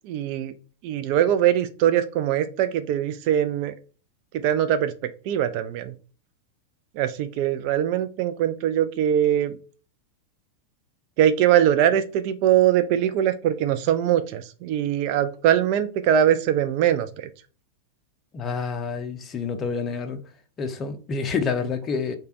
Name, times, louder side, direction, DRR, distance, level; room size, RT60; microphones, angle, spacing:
voice 1, 0.0-0.5 0.8-3.7 4.4-4.9 5.3-5.9 7.0-9.6 11.2-17.3, right 10 dB, 45° right, 0.3 m, -22 dB
voice 2, 18.3-20.2 20.6-22.2, left 5 dB, 25° left, 0.5 m, -28 dB
3.2 x 2.2 x 3.7 m
figure-of-eight pair, 90°, 0 cm